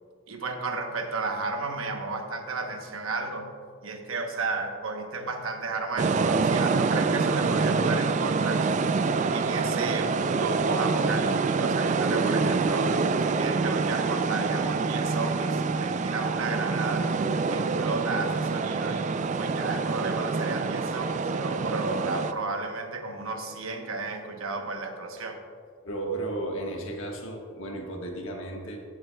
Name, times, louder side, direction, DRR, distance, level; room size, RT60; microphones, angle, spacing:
voice 1, 0.3-3.5 3.8-8.9 9.3-12.9 13.3-17.2 17.5-19.1 19.4-25.4, right 3 dB, 80° right, 5 dB, 1.0 m, -33 dB
sound 1, 6.0-22.3, right 4 dB, 35° right, 0.3 m, -26 dB
voice 2, 25.8-28.8, right 2 dB, 70° left, 1 dB, 1.4 m, -34 dB
14.5 x 7.5 x 2.3 m, 2.2 s
head